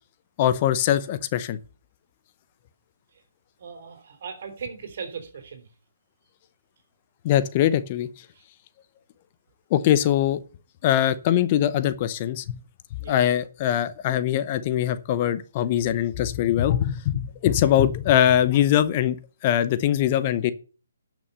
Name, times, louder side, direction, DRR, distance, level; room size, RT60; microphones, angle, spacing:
voice 1, 0.4-1.6 7.2-8.1 9.7-10.4 10.8-12.6 13.1-19.2 19.4-20.5, left 11 dB, 30° left, 0.7 m, -22 dB
voice 2, 3.6-5.7 8.3-8.4 13.0-13.2 17.7-17.8, right 6 dB, 50° right, 3.5 m, -38 dB
12.0 x 6.1 x 6.9 m
hypercardioid pair, 155°, 0 cm